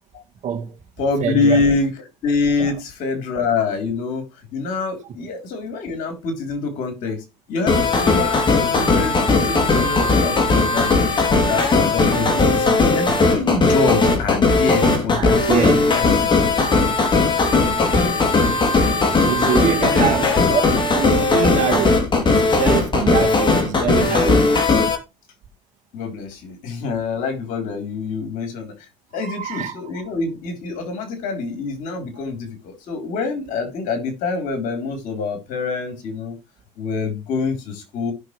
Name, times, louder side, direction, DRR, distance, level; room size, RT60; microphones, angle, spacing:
voice 1, 0.4-0.8 1.2-1.6 2.6-2.7 15.1-15.9 17.9-18.2 18.9-24.5 29.2-29.7, right 8 dB, 65° right, 2.2 m, -25 dB
voice 2, 1.0-1.9 2.2-11.1 11.5-15.4 15.8-16.5 19.4-20.4 25.9-28.7 29.1-36.3 36.8-38.1, left 4 dB, 80° left, 3.4 m, -25 dB
sound 1, 7.7-25.0, left 3 dB, 35° left, 2.8 m, -17 dB
16.0 x 6.0 x 3.2 m
supercardioid pair, 80°, 14 cm